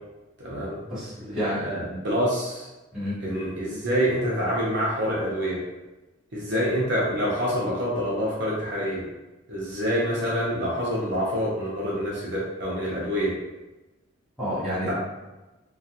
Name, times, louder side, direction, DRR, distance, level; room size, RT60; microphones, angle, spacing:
voice 1, 0.4-0.8 1.6-2.7 3.2-5.6 6.3-9.0 9.5-13.3 14.9-15.0, equal, 55° right, -5 dB, 0.6 m, -26 dB
voice 2, 0.9-1.7 2.9-3.1 14.4-14.9, equal, 5° right, -13 dB, 1.2 m, -29 dB
2.4 x 2.3 x 2.7 m, 1.1 s
head